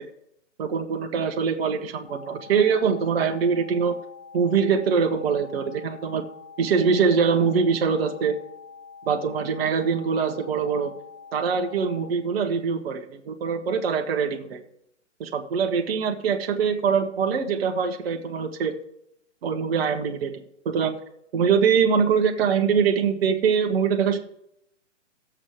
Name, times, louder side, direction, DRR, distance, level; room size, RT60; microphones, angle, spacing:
voice 1, 0.6-3.9 4.3-6.3 6.6-8.4 9.1-10.9 11.3-14.6 15.2-18.7 19.4-20.3 20.6-21.0 21.3-24.2, right 6 dB, 55° right, 4 dB, 1.3 m, -23 dB
sound 1, 2.1-12.1, left 5 dB, 40° left, 2.9 m, -45 dB
17.5 x 7.4 x 3.3 m, 0.78 s
hypercardioid pair, 140°, 37 cm